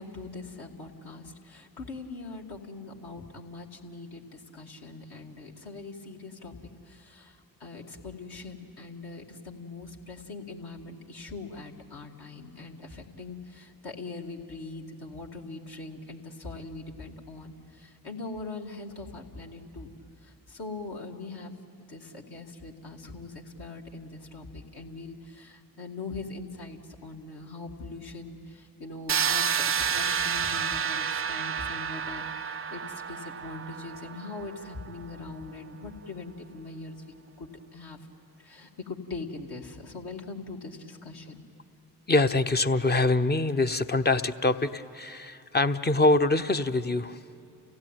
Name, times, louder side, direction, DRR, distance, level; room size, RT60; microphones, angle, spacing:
voice 1, 0.0-6.5 6.8-19.9 20.2-21.6 21.9-38.0 38.4-41.4, left 3 dB, 55° left, -1 dB, 2.6 m, -42 dB
sound 1, 29.1-34.9, right 7 dB, 30° right, 0.6 m, -30 dB
voice 2, 42.1-47.2, left 2 dB, 20° left, 9 dB, 0.9 m, -24 dB
29.5 x 16.0 x 9.1 m, 2.7 s
hypercardioid pair, 40°, 46 cm